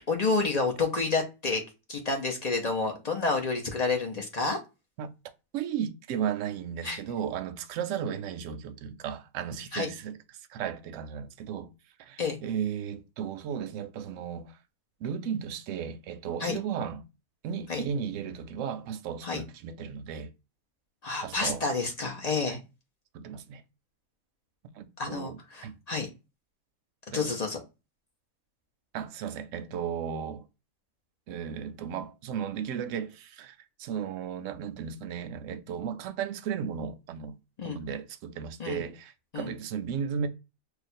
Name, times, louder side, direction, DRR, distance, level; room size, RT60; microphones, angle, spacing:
voice 1, 0.1-1.6 1.9-4.6 6.8-7.0 9.7-9.9 12.2-12.4 16.4-16.6 17.7-17.8 19.2-19.4 21.0-22.6 25.0-26.1 27.1-27.6 37.6-37.8 38.6-38.8 39.3-39.5, left 3 dB, 45° left, 0.5 m, -29 dB
voice 2, 5.5-10.2 10.5-11.7 12.0-14.6 15.0-17.0 17.4-20.3 21.2-21.6 22.5-22.6 23.1-23.6 24.8-25.8 27.1-27.3 28.9-30.4 31.3-37.4 37.6-40.3, right 8 dB, 70° right, 0.9 m, -35 dB
2.5 x 2.3 x 4.1 m
omnidirectional pair, 1.4 m